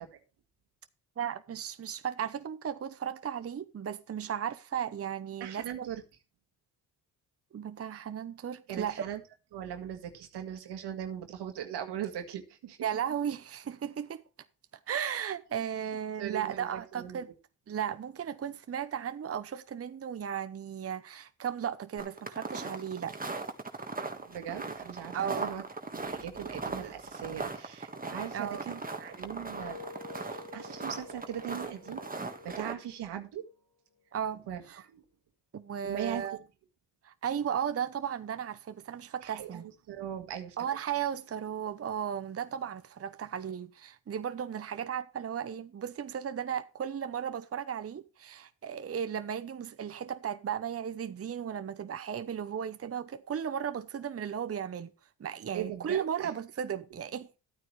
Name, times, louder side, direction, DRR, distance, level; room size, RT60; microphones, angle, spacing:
voice 1, 1.2-5.9 7.5-9.0 12.8-14.2 14.9-17.3 17.7-23.1 25.1-25.4 28.3-28.7 34.1-34.8 35.5-36.4 37.0-39.7 40.6-54.9 55.2-57.4, right 8 dB, 35° right, 0.8 m, -35 dB
voice 2, 5.4-6.0 8.7-9.2 9.5-12.8 16.2-17.2 24.3-25.6 25.9-29.9 30.2-33.5 34.5-35.0 35.8-36.4 39.2-40.6 55.5-56.3, right 10 dB, 80° right, 1.8 m, -40 dB
sound 1, 22.0-32.7, right 3 dB, 20° right, 1.7 m, -39 dB
sound 2, 28.6-33.6 34.0-34.3, left 4 dB, 75° left, 4.9 m, -50 dB
12.0 x 9.2 x 3.2 m
cardioid pair, 70°, 39 cm